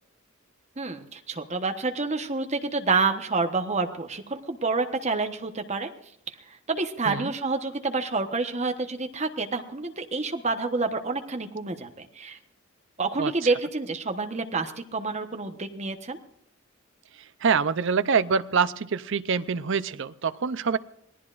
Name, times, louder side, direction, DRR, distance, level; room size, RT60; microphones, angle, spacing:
voice 1, 0.8-5.9 6.3-12.4 13.0-16.2, right 3 dB, 30° right, 5 dB, 1.1 m, -28 dB
voice 2, 17.4-20.8, right 5 dB, 60° right, 13 dB, 0.6 m, -25 dB
26.5 x 18.5 x 2.5 m, 0.70 s
head